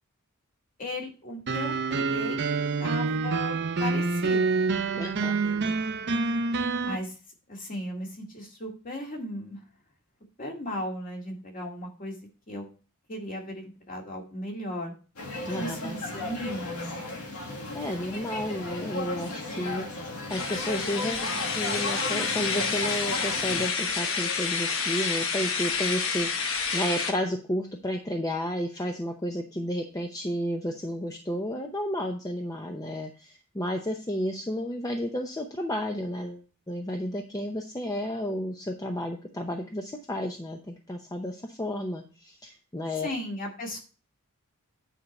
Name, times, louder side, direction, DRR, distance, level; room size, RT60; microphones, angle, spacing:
voice 1, 0.8-2.4 2.8-4.6 4.9-5.8 6.8-7.1 7.5-9.6 10.4-12.2 12.5-12.7 13.1-14.9 15.6-17.0 43.0-43.8, equal, 40° left, 0 dB, 2.1 m, -36 dB
sound 1, 1.5-7.0, right 4 dB, 50° right, 0.7 m, -27 dB
voice 2, 5.0-5.4 15.4-16.0 17.3-43.1, equal, 15° left, 3 dB, 0.7 m, -32 dB
sound 2, 15.2-23.7, left 2 dB, 85° left, 1.9 m, -35 dB
sound 3, 20.3-27.1, left 5 dB, 65° left, 1.3 m, -29 dB
9.3 x 4.5 x 5.3 m, 0.35 s
head